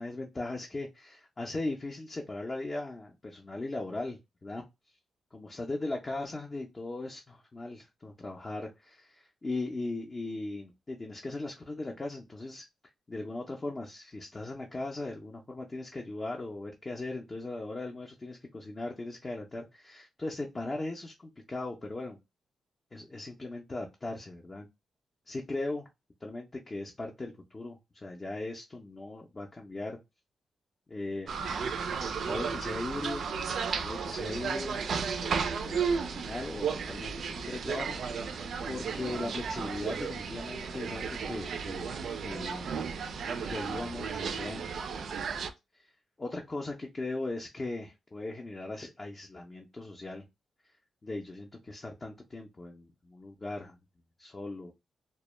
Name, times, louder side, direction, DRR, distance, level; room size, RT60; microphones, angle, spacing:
voice 1, 0.0-4.6 5.3-12.6 13.1-22.2 22.9-24.7 25.3-25.9 26.2-30.0 30.9-31.3 32.2-33.3 33.8-34.9 35.2-41.9 42.2-42.8 43.5-44.6 45.8-45.9 46.2-50.2 51.0-53.8 54.2-54.7, left 2 dB, 25° left, 0 dB, 0.4 m, -38 dB
sound 1, 31.3-45.5, right 6 dB, 65° right, 0.3 m, -34 dB
2.1 x 2.1 x 3.0 m, 0.22 s
cardioid pair, 115°, 0 cm